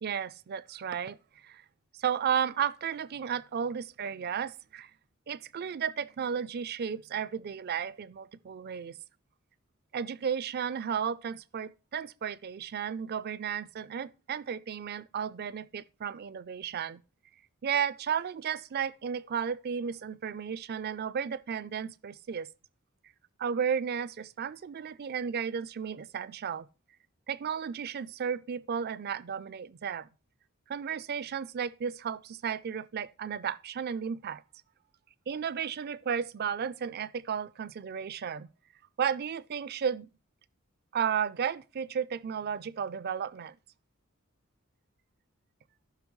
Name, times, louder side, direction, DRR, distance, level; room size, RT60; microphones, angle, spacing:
voice 1, 0.0-1.2 1.4-1.6 2.0-4.9 5.3-9.0 9.9-17.0 17.6-22.5 23.4-26.7 27.3-30.1 30.7-34.4 35.3-38.5 39.0-40.1 40.9-43.6, right 7 dB, 50° right, 0.4 m, -33 dB
15.0 x 5.7 x 3.1 m
head